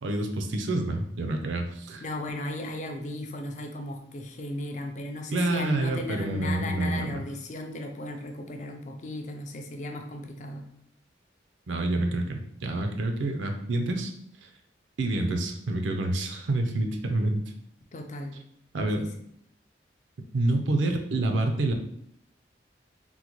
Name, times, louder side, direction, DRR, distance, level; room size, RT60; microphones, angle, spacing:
voice 1, 0.0-2.0 5.3-7.2 11.7-14.1 15.0-17.4 18.7-19.1 20.3-21.7, right 2 dB, 85° right, 4 dB, 0.5 m, -27 dB
voice 2, 2.0-10.7 17.9-18.4 19.0-19.1, left 1 dB, 40° left, 4 dB, 0.4 m, -36 dB
3.7 x 2.1 x 3.0 m, 0.70 s
head